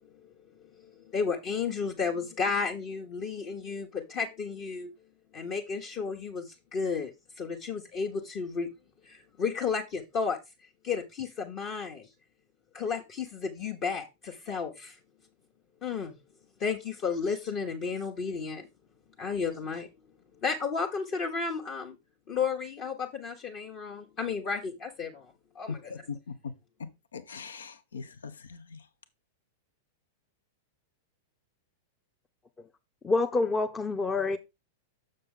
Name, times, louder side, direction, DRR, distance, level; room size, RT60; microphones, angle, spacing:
voice 1, 0.8-4.9 5.3-7.1 7.4-8.7 9.0-10.4 10.8-12.1 12.7-14.9 15.8-16.2 16.6-18.7 19.2-19.9 20.4-22.0 22.3-25.9, left 5 dB, 40° left, 1.2 m, -33 dB
voice 2, 25.9-26.3 27.1-28.8, left 5 dB, 75° left, 0.8 m, -42 dB
voice 3, 33.0-34.4, left 3 dB, 15° left, 0.7 m, -27 dB
6.7 x 6.5 x 3.8 m
figure-of-eight pair, 95°, 0 cm